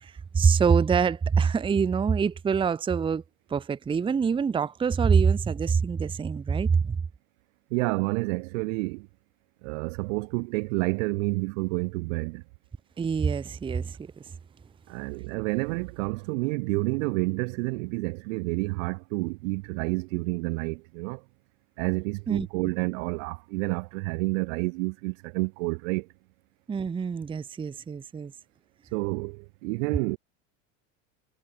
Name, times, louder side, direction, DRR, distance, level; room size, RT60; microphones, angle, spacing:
voice 1, 0.0-3.2 3.5-7.0 13.0-14.0 22.3-22.5 26.7-28.3, right 6 dB, 15° right, 0.7 m, -25 dB
voice 2, 7.7-9.1 9.6-12.4 14.9-21.2 21.8-26.1 28.9-30.2, right 28 dB, 70° right, 1.8 m, -29 dB
supercardioid pair, 120°, 39 cm